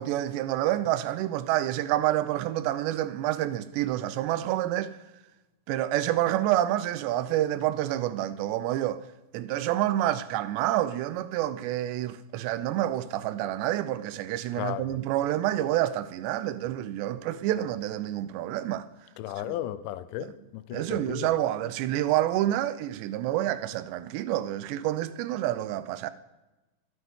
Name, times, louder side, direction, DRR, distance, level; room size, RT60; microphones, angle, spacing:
voice 1, 0.0-5.0 5.7-9.0 9.3-18.9 19.5-19.6 20.2-20.3 20.7-26.1, right 13 dB, 80° right, 2.8 m, -28 dB
voice 2, 19.2-21.3, left 13 dB, 90° left, 3.0 m, -35 dB
24.0 x 9.5 x 3.6 m
omnidirectional pair, 5.1 m